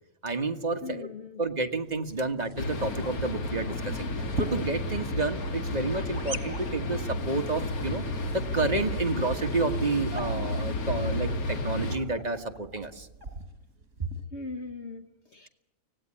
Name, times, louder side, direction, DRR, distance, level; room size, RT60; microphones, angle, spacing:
voice 1, 0.2-1.1 1.4-4.1 4.4-8.0 8.3-13.1 14.0-14.1, right 3 dB, 30° right, 1.6 m, -30 dB
voice 2, 0.8-1.4 14.3-15.5, left 3 dB, 55° left, 1.3 m, -39 dB
sound 1, 1.9-14.2, right 2 dB, 55° right, 3.4 m, -43 dB
sound 2, 2.6-12.0, left 1 dB, 90° left, 2.0 m, -32 dB
25.0 x 18.0 x 10.0 m
omnidirectional pair, 1.5 m